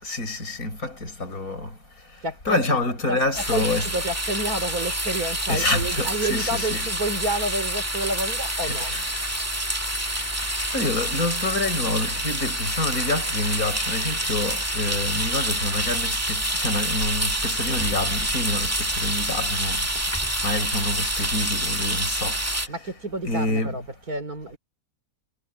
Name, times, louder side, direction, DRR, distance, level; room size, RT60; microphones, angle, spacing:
voice 1, 0.0-1.7 2.5-3.9 5.5-6.8 8.6-9.1 10.7-19.8 20.4-22.3 23.2-23.8, left 2 dB, 70° left, 7.3 m, -27 dB
voice 2, 2.2-2.6 3.1-3.2 3.5-9.0 22.7-24.6, right 1 dB, 75° right, 5.1 m, -29 dB
sound 1, 3.3-22.7, right 1 dB, 10° right, 2.1 m, -27 dB
omnidirectional pair, 1.6 m